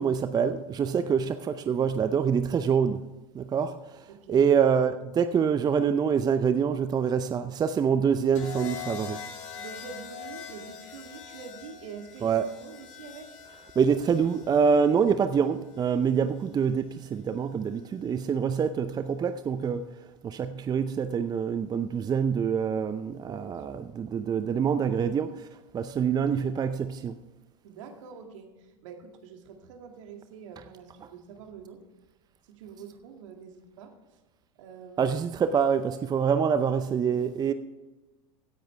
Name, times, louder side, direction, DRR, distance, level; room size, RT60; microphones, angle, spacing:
voice 1, 0.0-9.2 12.2-12.5 13.8-19.9 20.2-25.5 25.7-27.1 35.0-37.5, right 7 dB, 25° right, 11 dB, 0.6 m, -26 dB
voice 2, 4.1-4.4 9.6-13.3 23.3-23.8 27.6-31.8 32.5-33.9 34.6-35.2, right 6 dB, 65° right, 4 dB, 2.2 m, -45 dB
sound 1, 8.3-16.5 17.7-18.1, left 7 dB, 65° left, 2.6 m, -43 dB
16.5 x 10.0 x 3.4 m, 1.1 s
hypercardioid pair, 90°, 17 cm